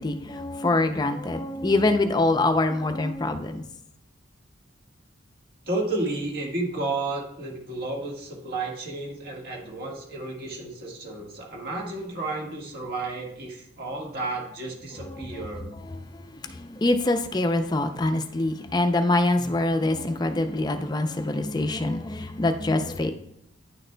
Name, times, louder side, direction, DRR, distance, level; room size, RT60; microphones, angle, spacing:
voice 1, 0.0-3.6 16.4-23.1, left 2 dB, 20° left, 6 dB, 0.4 m, -24 dB
voice 2, 5.6-15.7, right 2 dB, 50° right, -1 dB, 1.6 m, -32 dB
9.9 x 6.3 x 2.2 m, 0.76 s
head